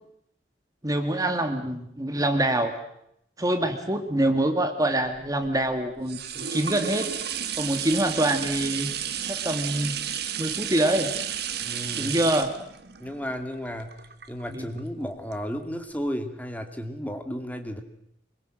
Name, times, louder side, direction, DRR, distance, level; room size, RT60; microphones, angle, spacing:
voice 1, 0.8-2.7 3.4-7.1 7.6-8.9 9.3-10.0 10.4-11.1 11.9-12.5 14.5-14.6, right 1 dB, 20° right, 7 dB, 2.0 m, -25 dB
sound 1, 5.0-14.8 15.3-15.4, right 9 dB, 65° right, 1.7 m, -32 dB
voice 2, 11.6-12.2 13.0-13.9 14.3-17.8, equal, 10° left, 6 dB, 2.3 m, -33 dB
25.5 x 23.0 x 7.6 m, 0.75 s
head